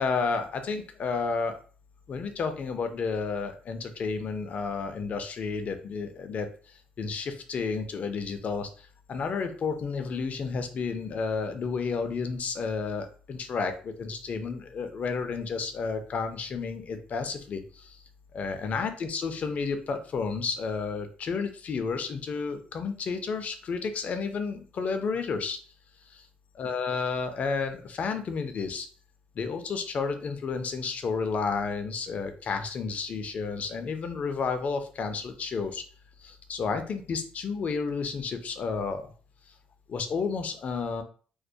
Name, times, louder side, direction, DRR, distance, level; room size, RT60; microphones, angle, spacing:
voice 1, 0.0-1.6 2.1-18.0 18.3-25.6 26.1-26.3 26.5-28.9 29.3-35.8 36.2-39.1 39.9-41.0, left 5 dB, 45° left, 7 dB, 0.4 m, -31 dB
2.2 x 2.1 x 2.6 m, 0.41 s
cardioid pair, 95°, 3 cm